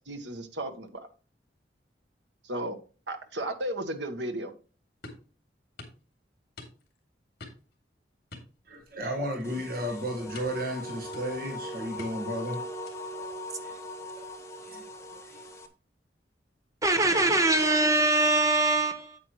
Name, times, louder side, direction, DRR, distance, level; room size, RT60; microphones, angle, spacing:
voice 1, 0.1-1.1 2.4-2.8 3.1-4.5, right 1 dB, 80° right, 1.3 m, -34 dB
sound 1, 5.0-5.3 5.8-6.0 6.6-7.0 7.4-7.7 8.3-9.1 9.4-9.6 10.3-10.7 11.1-11.5 12.0-12.4 12.9-13.2, left 3 dB, 60° left, 2.6 m, -47 dB
voice 2, 8.6-12.8 13.2-13.3 13.6-13.8 14.2-14.3 14.6-15.4, equal, 55° right, 1.6 m, -34 dB
sound 2, 9.4-15.7, left 1 dB, 15° left, 1.0 m, -40 dB
voice 3, 16.8-19.2, right 2 dB, 20° right, 1.0 m, -23 dB
8.6 x 8.5 x 3.1 m
head